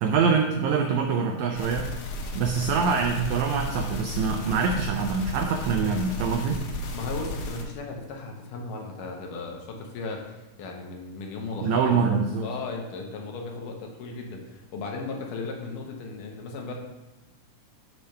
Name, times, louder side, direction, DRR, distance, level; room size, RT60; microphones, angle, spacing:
voice 1, 0.0-1.9 2.3-6.6 11.6-12.5, right 5 dB, 90° right, 4 dB, 1.6 m, -24 dB
sound 1, 1.6-7.6, left 1 dB, 90° left, 2.7 m, -34 dB
voice 2, 6.9-16.7, left 3 dB, 75° left, 1 dB, 2.5 m, -36 dB
6.8 x 4.5 x 5.4 m, 1.0 s
omnidirectional pair, 3.9 m